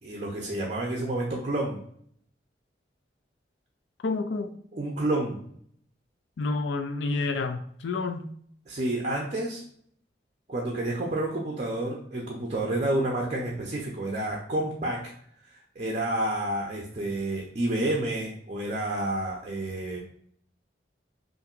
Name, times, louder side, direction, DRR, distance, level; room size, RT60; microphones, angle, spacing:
voice 1, 0.0-1.8 4.7-5.4 8.7-9.6 10.5-15.0 15.8-20.0, right 1 dB, 40° right, 0.6 m, -29 dB
voice 2, 4.0-4.5 6.4-8.3, left 3 dB, 75° left, 0.4 m, -29 dB
5.7 x 2.6 x 2.5 m
head